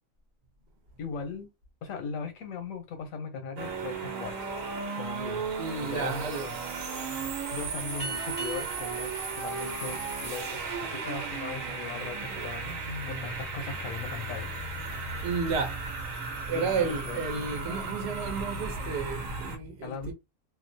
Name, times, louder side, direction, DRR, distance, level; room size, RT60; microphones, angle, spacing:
voice 1, 1.0-1.5 1.8-4.5 4.9-5.5 5.8-6.6 7.5-14.5 16.6-17.2 19.8-20.1, left 4 dB, 90° left, 1.1 m, -39 dB
sound 1, 3.6-19.6, right 4 dB, 85° right, 1.1 m, -35 dB
voice 2, 5.5-6.5 15.2-15.8 16.5-20.1, right 5 dB, 60° right, 1.0 m, -32 dB
sound 2, 8.0-10.9, right 3 dB, 30° right, 1.1 m, -42 dB
2.6 x 2.0 x 2.6 m
omnidirectional pair, 1.4 m